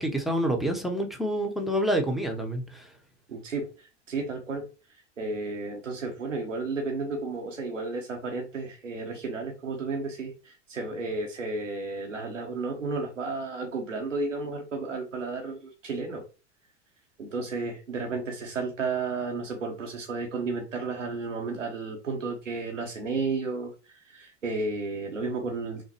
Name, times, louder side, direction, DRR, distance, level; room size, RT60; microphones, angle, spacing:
voice 1, 0.0-2.9, right 1 dB, ahead, 3 dB, 1.0 m, -28 dB
voice 2, 3.3-3.7 4.1-4.7 5.2-16.2 17.2-25.8, right 3 dB, 90° right, 2 dB, 1.1 m, -32 dB
6.3 x 2.2 x 3.0 m, 0.31 s
figure-of-eight pair, 85°, 37 cm